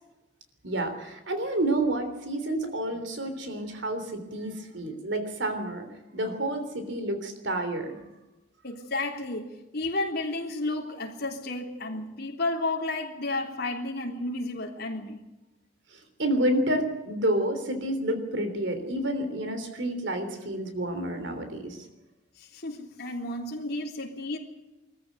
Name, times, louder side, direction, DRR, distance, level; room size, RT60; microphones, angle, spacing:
voice 1, 0.6-5.9 6.1-8.0 16.2-21.8, right 1 dB, 65° right, 8 dB, 3.4 m, -29 dB
voice 2, 8.6-15.2 22.4-24.4, left 2 dB, 55° left, 0 dB, 3.5 m, -32 dB
21.5 x 14.5 x 9.3 m, 1.0 s
head